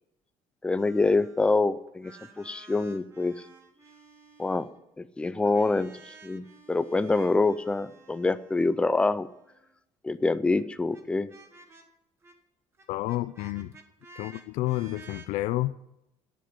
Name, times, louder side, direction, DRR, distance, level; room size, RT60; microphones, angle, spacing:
voice 1, 0.6-3.4 4.4-4.7 5.0-9.3 10.0-11.3, left 3 dB, 10° left, 0.3 m, -26 dB
sound 1, 0.8-1.6 1.9-4.8 5.5-9.7 10.5-10.6 10.9-11.0 11.3-11.8 12.2-12.3 12.7-15.3, right 4 dB, 20° right, 1.3 m, -53 dB
voice 2, 12.9-13.7 14.2-15.7, left 17 dB, 80° left, 0.4 m, -30 dB
10.5 x 7.6 x 9.6 m
cardioid pair, 180°, 12 cm